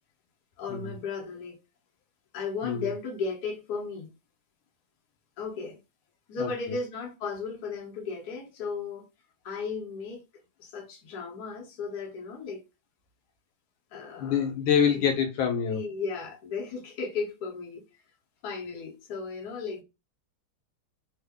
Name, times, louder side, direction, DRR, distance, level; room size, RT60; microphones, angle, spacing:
voice 1, 0.6-1.6 2.3-4.1 5.4-5.8 6.3-9.0 9.4-10.2 10.6-12.6 13.9-14.5 14.9-15.0 15.7-17.8 18.4-19.8, left 4 dB, 55° left, 1.3 m, -35 dB
voice 2, 6.4-6.8 14.1-15.8, left 7 dB, 80° left, 1.5 m, -26 dB
3.7 x 2.0 x 3.4 m
omnidirectional pair, 2.3 m